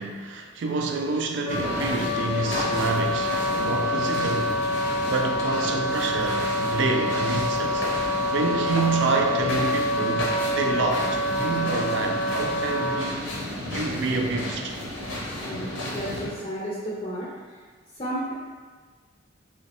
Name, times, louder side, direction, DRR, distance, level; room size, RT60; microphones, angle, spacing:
voice 1, 0.0-4.6 5.1-10.3 10.6-13.3 13.7-14.8, right 3 dB, 70° right, 3 dB, 0.4 m, -28 dB
Wind instrument woodwind instrument, 1.4-13.0, left 1 dB, 5° right, 0.7 m, -27 dB
sound 1, 1.5-16.3, left 1 dB, 75° left, 0.8 m, -32 dB
voice 2, 15.4-17.3 18.0-18.3, equal, 25° left, -6 dB, 0.6 m, -32 dB
3.1 x 3.0 x 2.9 m, 1.5 s
head